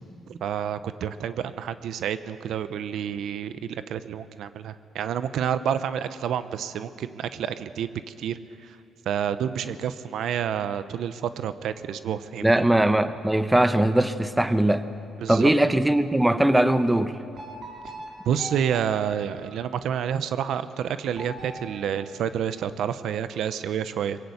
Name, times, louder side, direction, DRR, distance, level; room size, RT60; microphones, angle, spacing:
voice 1, 0.3-8.8 9.1-12.5 15.2-15.5 18.3-24.2, right 9 dB, 75° right, 12 dB, 0.8 m, -29 dB
voice 2, 12.4-14.9 15.3-17.1, right 1 dB, 10° right, 11 dB, 0.9 m, -20 dB
sound 1, 17.3-20.0 21.1-22.9, right 1 dB, 55° right, 4.1 m, -42 dB
22.0 x 17.5 x 8.1 m, 2.5 s
cardioid pair, 90°, 0 cm